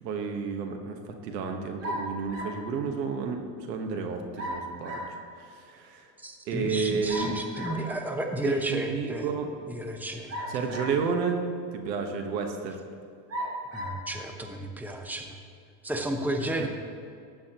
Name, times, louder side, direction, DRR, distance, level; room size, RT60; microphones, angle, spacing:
voice 1, 0.0-5.0 5.4-6.1 6.5-7.3 8.4-9.5 10.5-11.4 11.7-12.8 16.6-16.7, right 5 dB, 90° right, 5 dB, 1.4 m, -31 dB
sound 1, 1.8-2.7 4.4-5.2 7.1-7.9 10.3-11.1 11.9-12.0 13.3-14.0, equal, 30° right, 2.9 m, -35 dB
voice 2, 6.2-9.3 9.7-10.6 13.7-15.4 15.8-16.7, right 1 dB, 5° right, 4 dB, 1.0 m, -32 dB
14.5 x 9.6 x 3.0 m, 2.4 s
supercardioid pair, 105°, 48 cm